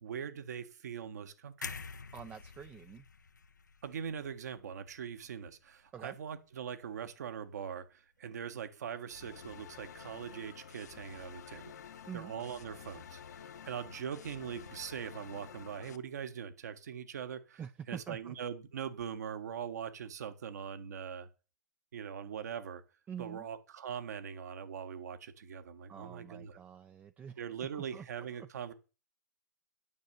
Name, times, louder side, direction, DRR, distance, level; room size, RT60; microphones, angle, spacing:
voice 1, 0.0-1.8 3.8-11.7 12.1-17.6 17.9-21.3 21.9-22.8 23.2-26.6 27.4-28.7, right 8 dB, 65° right, 1.6 m, -42 dB
sound 1, 1.6-5.6 6.0-6.2, left 5 dB, 85° left, 0.9 m, -48 dB
voice 2, 2.1-3.1 5.9-6.1 12.1-12.3 17.6-18.4 23.1-23.5 25.9-28.1, right 8 dB, 15° right, 0.5 m, -46 dB
sound 2, 9.1-16.0, left 7 dB, 65° left, 1.2 m, -50 dB
9.3 x 6.3 x 6.9 m
hypercardioid pair, 120°, 10 cm